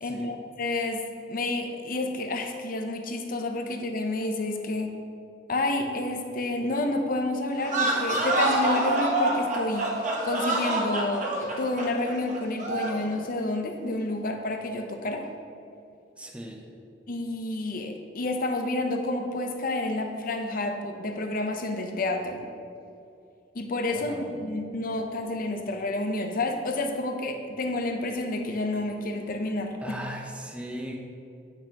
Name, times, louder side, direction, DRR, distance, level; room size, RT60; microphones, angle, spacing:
voice 1, 0.0-4.9 5.5-15.3 17.1-22.4 23.5-30.0, left 2 dB, 50° left, 5 dB, 0.6 m, -29 dB
sound 1, 7.6-13.0, right 2 dB, 45° right, 0.9 m, -26 dB
voice 2, 16.2-16.6 23.9-24.3 29.8-31.0, equal, 5° right, 1 dB, 0.6 m, -38 dB
8.5 x 6.0 x 2.9 m, 2.6 s
head